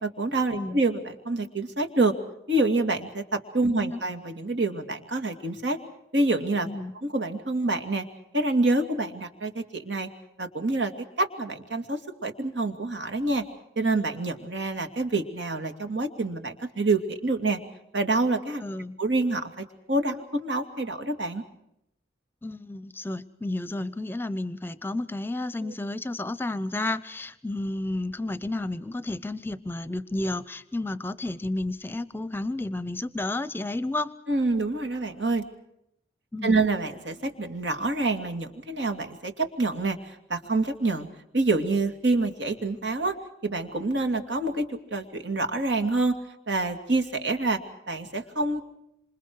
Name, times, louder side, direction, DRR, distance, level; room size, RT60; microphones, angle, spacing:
voice 1, 0.0-2.1 2.5-5.8 6.1-6.7 7.0-8.0 8.3-10.1 10.4-10.9 11.2-13.4 13.8-17.6 17.9-18.6 19.0-21.4 25.6-25.7 34.3-35.4 36.4-41.1 41.3-43.2 43.4-46.1 46.5-47.6 47.9-48.6, right 2 dB, 75° right, 6 dB, 2.6 m, -27 dB
voice 2, 3.6-4.0 6.6-6.9 18.6-19.0 22.4-34.2 36.3-36.6, left 2 dB, 10° left, 15 dB, 0.8 m, -31 dB
27.0 x 27.0 x 4.8 m, 0.80 s
head